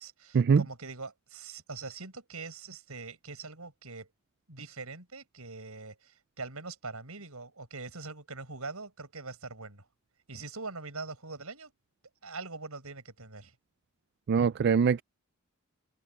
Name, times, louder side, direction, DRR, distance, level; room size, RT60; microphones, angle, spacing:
voice 1, 0.0-4.1 4.5-9.9 10.3-11.7 12.2-13.5, right 3 dB, 85° right, 5.8 m, -43 dB
voice 2, 14.3-15.0, right 6 dB, 50° right, 0.3 m, -23 dB
open air
head